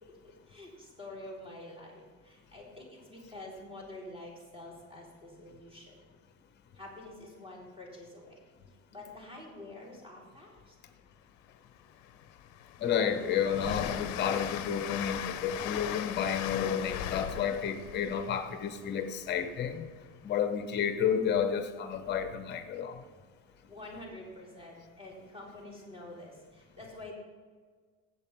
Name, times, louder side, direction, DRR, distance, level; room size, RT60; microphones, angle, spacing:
voice 1, 0.0-6.0 6.7-8.4 8.9-10.8 23.7-27.1, left 1 dB, 20° right, 3.5 m, -47 dB
Train, 11.5-11.6 12.0-19.7, left 11 dB, 65° left, 0.8 m, -39 dB
voice 2, 12.8-19.9 20.2-23.0, left 7 dB, 35° left, 1.0 m, -31 dB
15.5 x 8.2 x 3.5 m
cardioid pair, 165°, 31 cm